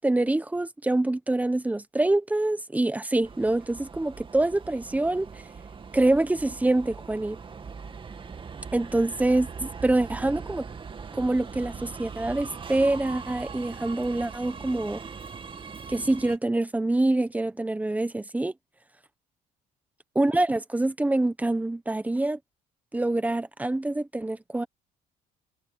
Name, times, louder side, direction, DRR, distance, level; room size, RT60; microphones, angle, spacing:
voice 1, 0.0-5.3 5.9-7.4 8.7-10.6 11.1-15.0 15.9-18.5 20.1-22.4 22.9-24.7, right 2 dB, 10° right, 1.2 m, -25 dB
Subway metro underground, 3.2-16.4, right 5 dB, 30° right, 2.3 m, -41 dB
cardioid pair, 110°, 17 cm